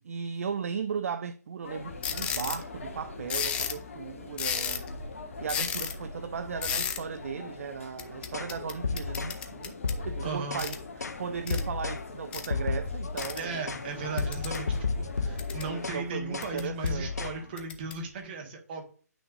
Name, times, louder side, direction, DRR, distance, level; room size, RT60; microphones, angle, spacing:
voice 1, 0.0-4.9 5.4-9.8 10.1-13.7 15.7-17.3, right 6 dB, 55° right, 0.4 m, -36 dB
sound 1, 1.6-15.9, left 3 dB, 50° left, 1.4 m, -43 dB
sound 2, 2.0-2.6 3.3-3.8 4.3-4.9 5.5-5.9 6.6-7.0 8.0-10.0 10.6-10.8 11.5-11.6 12.3-12.5 13.2-13.4 14.2-14.6 15.1-15.7 16.4-16.9 17.6-17.9, left 8 dB, 10° left, 0.5 m, -33 dB
sound 3, 8.3-8.5 8.8-9.4 9.8-10.7 11.0-11.2 11.5-12.0 12.5-13.3 13.7-13.9 14.2-16.0 16.3-16.5 16.8-17.4, left 4 dB, 70° left, 0.8 m, -32 dB
voice 2, 10.2-10.6 13.3-18.8, right 4 dB, 35° right, 1.7 m, -36 dB
9.3 x 6.1 x 2.6 m
figure-of-eight pair, 140°, 9 cm